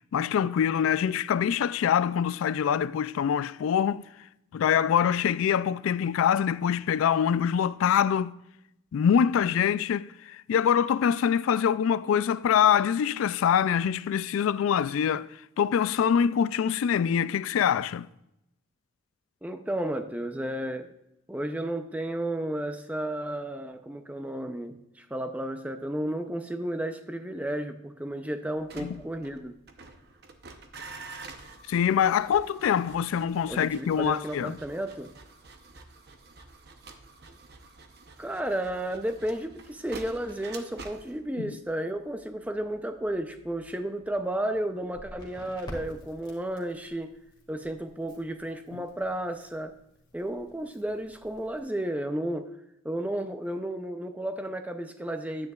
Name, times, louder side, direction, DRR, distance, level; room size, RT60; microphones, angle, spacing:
voice 1, 0.1-4.0 4.5-8.4 8.9-15.3 15.6-18.1 28.8-29.0 31.7-34.6 41.4-41.5 48.7-48.8, left 8 dB, 85° left, 0.3 m, -24 dB
voice 2, 19.4-20.9 21.3-29.5 33.5-35.1 38.2-47.1 47.5-49.8 50.1-52.5 52.8-55.5, right 1 dB, 5° right, 0.5 m, -33 dB
sound 1, 28.5-45.5 45.8-46.3, right 3 dB, 50° right, 0.8 m, -48 dB
Crackle, 44.9-51.6, equal, 20° left, 1.8 m, -49 dB
10.5 x 9.3 x 2.3 m
head